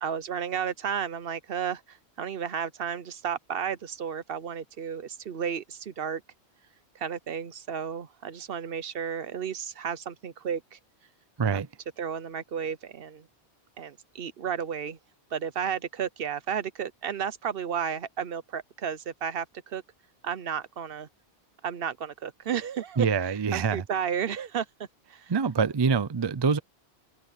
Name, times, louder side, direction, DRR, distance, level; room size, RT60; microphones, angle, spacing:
voice 1, 0.0-6.2 6.9-10.8 11.4-11.6 12.0-13.3 13.8-15.0 15.3-19.8 20.2-21.1 21.6-24.7 25.1-25.3, right 8 dB, 60° right, 0.9 m, -33 dB
voice 2, 23.0-23.8 25.3-26.6, right 5 dB, 35° right, 0.4 m, -25 dB
open air
omnidirectional pair, 1.1 m